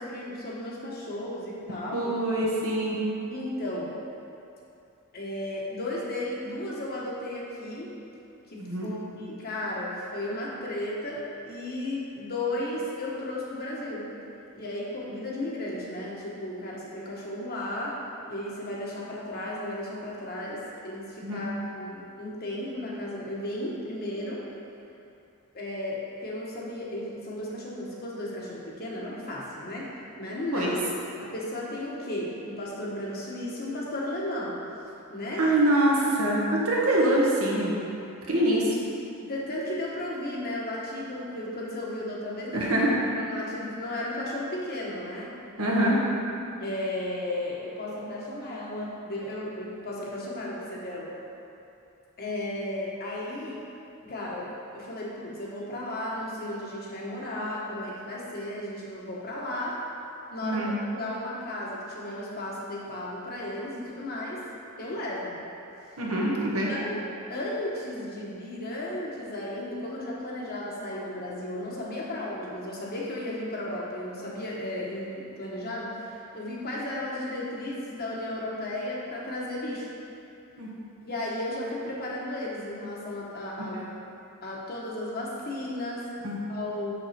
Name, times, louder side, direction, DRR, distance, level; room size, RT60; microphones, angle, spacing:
voice 1, 0.0-2.1 3.3-3.9 5.1-7.9 8.5-14.2 14.5-18.0 18.3-24.4 25.5-29.9 30.2-30.7 31.2-34.6 35.1-35.4 39.2-42.6 43.2-45.3 46.6-51.1 52.2-53.6 54.0-59.8 60.3-64.4 64.8-65.4 65.8-65.9 66.7-67.0 67.3-79.9 81.1-83.8 84.4-86.1 86.5-86.9, left 1 dB, 45° left, -5 dB, 1.4 m, -34 dB
voice 2, 1.9-3.0 8.6-8.9 21.2-21.4 30.5-30.7 35.4-37.7 38.3-38.7 42.5-42.9 45.6-46.0 60.4-60.7 66.0-66.7 80.6-80.7 83.7-83.8 86.2-86.4, right 1 dB, 75° right, -4 dB, 1.5 m, -24 dB
6.4 x 6.3 x 4.3 m, 2.7 s
head